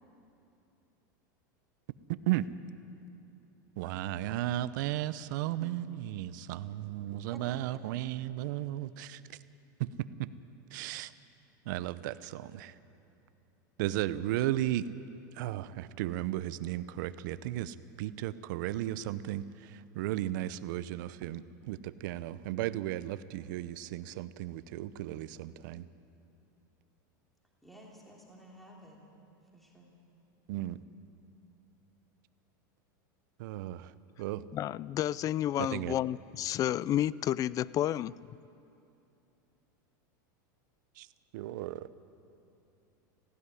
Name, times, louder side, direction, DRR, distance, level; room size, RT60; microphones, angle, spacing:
voice 1, 2.1-2.5 3.8-9.2 9.8-10.3 10.7-11.1 11.6-12.7 13.8-14.9 15.3-25.9 30.5-30.8 33.4-34.5 35.7-35.9 41.0-41.1 41.3-41.8, right 14 dB, 70° right, 15 dB, 0.7 m, -35 dB
voice 2, 27.6-29.0 29.5-29.9, right 1 dB, ahead, -3 dB, 3.1 m, -52 dB
voice 3, 34.5-38.1, left 12 dB, 35° left, 21 dB, 0.4 m, -31 dB
17.5 x 15.5 x 9.8 m, 2.7 s
supercardioid pair, 120°, 11 cm